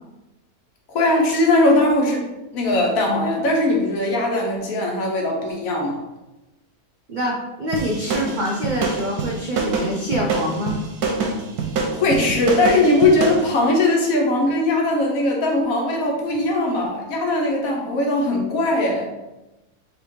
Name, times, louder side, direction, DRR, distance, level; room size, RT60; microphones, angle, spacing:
voice 1, 0.9-2.2 2.5-6.0 11.9-19.1, left 2 dB, 65° left, 0 dB, 1.3 m, -20 dB
voice 2, 7.1-10.8, equal, 60° right, -2 dB, 0.5 m, -25 dB
sound 1, 7.7-13.5, right 4 dB, 85° right, 1.3 m, -25 dB
3.6 x 3.1 x 4.6 m, 1.0 s
omnidirectional pair, 1.6 m